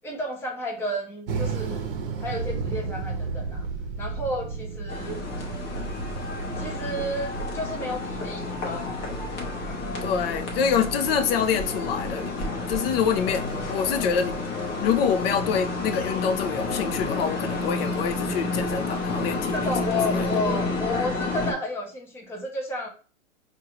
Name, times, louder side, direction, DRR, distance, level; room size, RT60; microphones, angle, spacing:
voice 1, 0.0-3.7 4.0-5.2 6.6-9.1 9.6-9.8 19.4-22.9, left 1 dB, 5° left, 0.8 m, -32 dB
sound 1, 1.3-7.5, right 4 dB, 45° right, 0.9 m, -32 dB
sound 2, 4.9-21.5, left 3 dB, 30° left, 1.0 m, -30 dB
sound 3, 5.0-17.1, left 3 dB, 65° left, 1.0 m, -42 dB
voice 2, 10.0-14.3 14.8-19.7 20.1-20.3, left 7 dB, 45° left, 0.7 m, -26 dB
4.7 x 2.5 x 3.0 m
hypercardioid pair, 125°, 40 cm